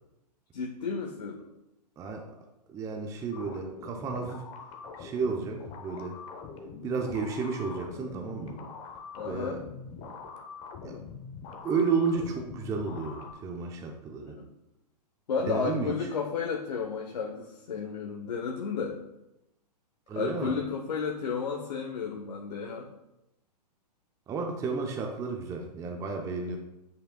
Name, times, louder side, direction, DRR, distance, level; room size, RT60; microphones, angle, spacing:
voice 1, 0.5-1.4 9.2-9.6 14.2-14.4 15.3-19.0 20.1-22.9, left 5 dB, 70° left, 0 dB, 0.9 m, -32 dB
voice 2, 2.7-4.4 5.0-6.1 6.8-8.6 9.2-9.6 10.8-11.0 11.6-14.4 15.5-15.9 20.1-20.6 24.3-26.6, right 4 dB, 15° right, 2 dB, 0.6 m, -32 dB
sound 1, 3.3-13.3, left 5 dB, 30° left, 0.8 m, -43 dB
8.6 x 5.1 x 2.2 m, 0.91 s
hypercardioid pair, 120°, 21 cm